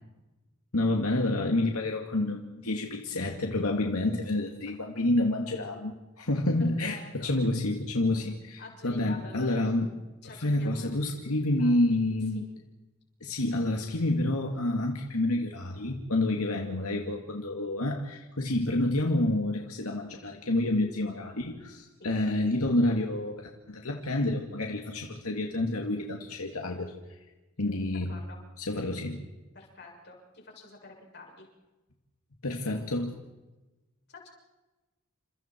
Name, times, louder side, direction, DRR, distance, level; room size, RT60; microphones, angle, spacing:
voice 1, 0.7-9.9 10.2-12.5 13.2-26.9 27.6-28.2 28.6-29.2 32.4-33.2, left 1 dB, 85° left, 2 dB, 2.3 m, -29 dB
voice 2, 6.6-7.3 8.6-9.6 10.2-10.9 11.6-12.0 12.3-12.5 22.0-22.1 28.1-28.4 29.5-31.5 34.1-34.3, left 3 dB, 50° left, 0 dB, 7.0 m, -48 dB
29.5 x 27.0 x 4.6 m, 1.1 s
head